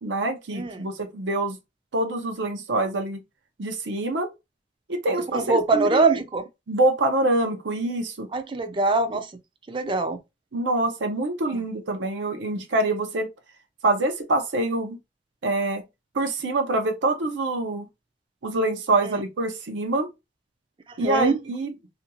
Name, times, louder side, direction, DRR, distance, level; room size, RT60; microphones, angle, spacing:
voice 1, 0.0-1.6 1.9-3.2 3.6-4.3 4.9-6.1 6.7-8.3 10.5-13.3 13.8-15.0 15.4-15.8 16.1-17.9 18.4-20.1 21.0-21.7, right 2 dB, 80° right, 0.6 m, -25 dB
voice 2, 0.5-0.9 5.3-6.5 8.3-9.3 9.7-10.2 11.5-11.6 19.0-19.2 20.9-21.4, right 3 dB, 30° right, 0.4 m, -23 dB
2.5 x 2.3 x 2.7 m
head